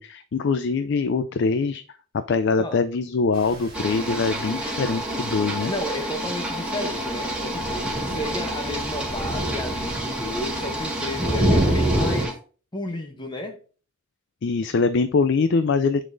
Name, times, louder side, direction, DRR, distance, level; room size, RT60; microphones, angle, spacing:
voice 1, 0.0-1.8 2.1-5.7 14.4-16.1, left 4 dB, 60° left, 0.4 m, -23 dB
sound 1, 3.3-12.3, right 1 dB, 30° right, 2.9 m, -28 dB
sound 2, 3.7-12.3, right 1 dB, 5° right, 1.7 m, -30 dB
voice 2, 5.7-7.9 8.1-12.3 12.7-13.6, left 1 dB, 25° left, 0.8 m, -32 dB
9.1 x 4.1 x 2.6 m
head